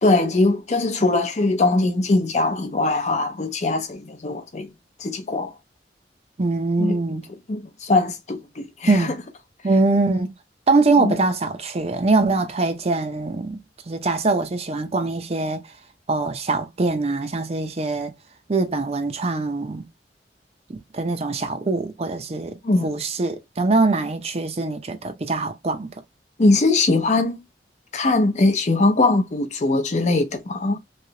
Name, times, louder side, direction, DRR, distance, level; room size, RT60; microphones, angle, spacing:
voice 1, 0.0-4.7 5.0-5.5 6.8-7.0 7.5-9.2 11.0-11.1 22.6-22.9 26.4-27.4 27.9-30.8, left 2 dB, 40° left, 0.6 m, -21 dB
voice 2, 6.4-7.2 8.9-9.2 9.6-10.3 10.7-13.6 13.9-15.6 16.1-18.1 18.5-19.8 20.7-25.9, right 3 dB, 35° right, 0.6 m, -23 dB
3.2 x 2.8 x 2.8 m
head